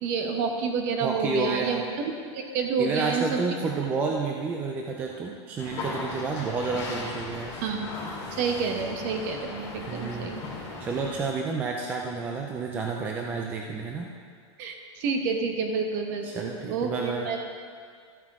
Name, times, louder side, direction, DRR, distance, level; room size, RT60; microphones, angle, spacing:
voice 1, 0.0-3.4 7.6-7.9 8.3-10.4 14.6-17.4, right 5 dB, 35° right, 4 dB, 1.0 m, -29 dB
voice 2, 1.0-1.8 2.8-7.6 9.9-10.3 10.8-14.1 16.2-17.3, right 4 dB, 10° right, 0 dB, 0.4 m, -30 dB
sound 1, 5.6-11.2, left 3 dB, 20° left, 2.8 m, -37 dB
13.5 x 8.7 x 3.6 m, 2.1 s
supercardioid pair, 175°, 15 cm